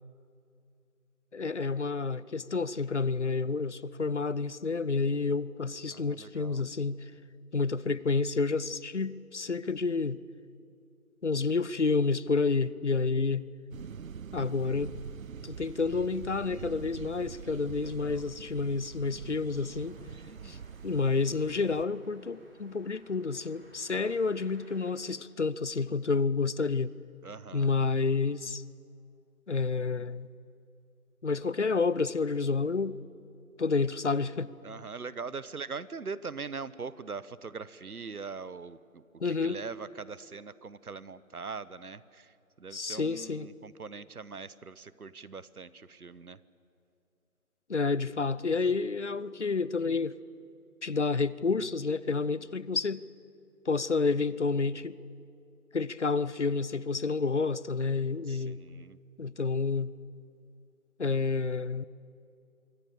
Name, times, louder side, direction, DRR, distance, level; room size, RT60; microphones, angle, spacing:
voice 1, 1.3-7.0 7.5-10.2 11.2-13.5 14.3-15.0 15.4-20.0 20.4-20.6 20.8-26.9 27.5-28.6 29.5-30.3 31.2-33.0 33.6-34.5 39.2-39.6 42.7-43.5 47.7-50.2 50.8-53.1 53.7-55.0 55.7-58.6 59.2-59.9 61.0-61.8, left 4 dB, 55° left, 0.7 m, -29 dB
voice 2, 5.9-6.6 17.8-18.2 20.2-20.6 24.0-24.2 27.2-27.7 34.6-46.4 58.3-59.0, right 5 dB, 90° right, 1.2 m, -42 dB
sound 1, 13.7-21.8, right 7 dB, 70° right, 0.5 m, -44 dB
sound 2, 19.7-24.9, right 1 dB, 40° right, 4.5 m, -59 dB
25.0 x 24.5 x 6.9 m
figure-of-eight pair, 175°, 43 cm